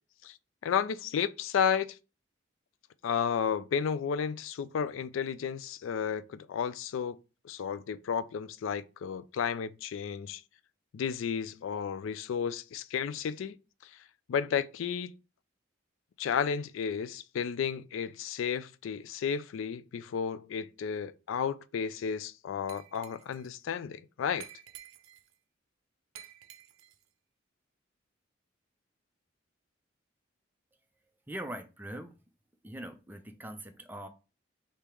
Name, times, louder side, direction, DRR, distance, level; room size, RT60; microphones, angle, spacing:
voice 1, 0.6-2.0 3.0-7.2 7.4-10.4 10.9-13.6 13.8-13.9 14.3-15.1 16.2-24.5, left 7 dB, 80° left, 0.3 m, -32 dB
Glass, 22.7-23.5 24.4-25.3 26.1-27.0, right 10 dB, 90° right, 0.5 m, -51 dB
voice 2, 31.3-32.1 32.6-34.1, right 1 dB, 10° right, 0.5 m, -42 dB
3.5 x 2.8 x 4.6 m
head